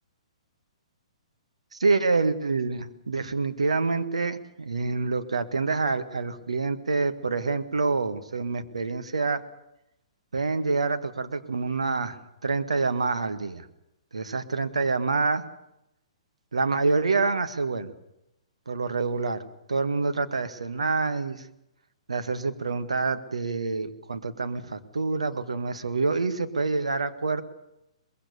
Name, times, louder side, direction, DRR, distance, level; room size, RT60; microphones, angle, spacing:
voice 1, 1.7-9.4 10.3-13.7 14.1-15.4 16.5-17.9 18.7-21.5 22.1-27.4, right 4 dB, 75° right, 9 dB, 1.8 m, -27 dB
23.0 x 21.0 x 6.8 m, 0.86 s
figure-of-eight pair, 120°, 3 cm